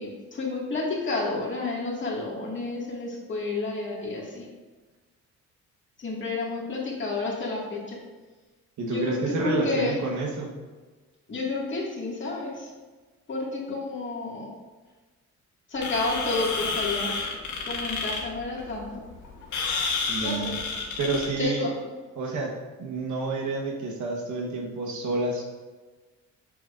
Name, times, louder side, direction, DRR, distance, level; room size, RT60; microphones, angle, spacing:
voice 1, 0.0-4.5 6.0-8.0 8.8-10.0 11.3-12.7 13.3-14.5 15.7-17.1 17.7-19.0 20.2-20.5 21.4-21.7, left 3 dB, 40° left, -3 dB, 2.2 m, -30 dB
voice 2, 8.8-10.5 20.1-20.6 21.0-21.7 22.2-25.4, right 3 dB, 75° right, 1 dB, 1.4 m, -29 dB
sound 1, 15.8-21.4, left 4 dB, 75° left, 1.5 m, -30 dB
7.6 x 6.7 x 2.6 m, 1.3 s
cardioid pair, 90°, 30 cm